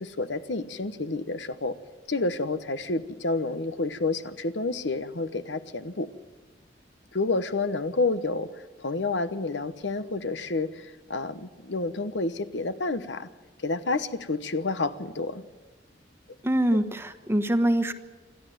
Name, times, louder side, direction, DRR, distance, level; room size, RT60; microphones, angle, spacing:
voice 1, 0.0-1.7 2.1-6.1 7.1-13.3 13.6-15.4, left 3 dB, 70° left, 12 dB, 1.1 m, -29 dB
voice 2, 16.4-17.9, right 1 dB, 15° right, 8 dB, 1.2 m, -24 dB
27.5 x 12.5 x 9.3 m, 1.3 s
head